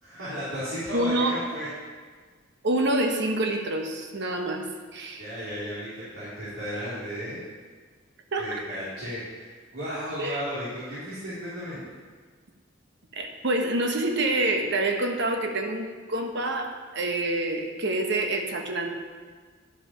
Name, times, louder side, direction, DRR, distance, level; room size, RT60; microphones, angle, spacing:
voice 1, 0.0-1.7 5.2-7.5 8.4-11.8, equal, 85° right, -11 dB, 2.8 m, -34 dB
voice 2, 0.9-1.4 2.6-4.7 4.9-5.2 8.3-8.6 10.2-10.4 13.1-18.9, right 2 dB, 60° right, 3 dB, 1.1 m, -27 dB
10.5 x 5.8 x 5.5 m, 1.5 s
head